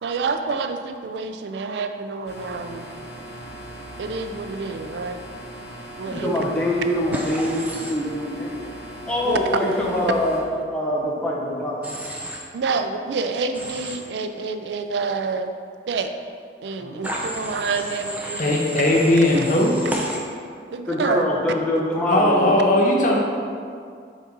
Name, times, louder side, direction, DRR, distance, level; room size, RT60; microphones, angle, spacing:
voice 1, 0.0-2.9 4.0-5.2 6.0-6.3 9.2-9.4 12.5-15.5 15.9-16.1 16.6-19.0 20.7-21.3 22.1-22.2, right 4 dB, 75° right, 7 dB, 0.4 m, -28 dB
sound 1, 2.3-10.4, right 1 dB, 75° left, 1.4 m, -39 dB
voice 2, 6.1-8.6 9.1-10.4 10.7-12.0 16.8-17.1 20.9-22.5, left 1 dB, 5° left, -5 dB, 0.9 m, -24 dB
Human voice / Train, 7.1-7.9 11.8-12.4 13.5-14.0 17.0-20.2, right 1 dB, 10° right, 0.5 m, -32 dB
voice 3, 18.4-19.7 22.1-23.2, left 1 dB, 45° left, -1 dB, 0.8 m, -18 dB
5.0 x 3.9 x 5.3 m, 2.2 s
head